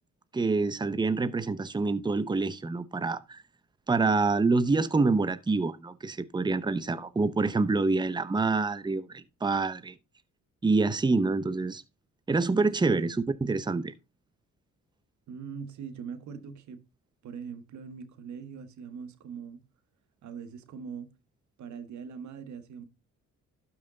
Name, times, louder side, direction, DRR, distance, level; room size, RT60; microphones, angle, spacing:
voice 1, 0.3-3.4 3.9-9.9 10.6-11.8 12.3-13.9, right 3 dB, 15° right, 0.8 m, -26 dB
voice 2, 12.9-13.2 15.3-16.8 17.2-19.6 20.2-21.1 21.6-22.8, right 6 dB, 70° right, 1.6 m, -42 dB
12.0 x 5.7 x 3.9 m
cardioid pair, 90°, 30 cm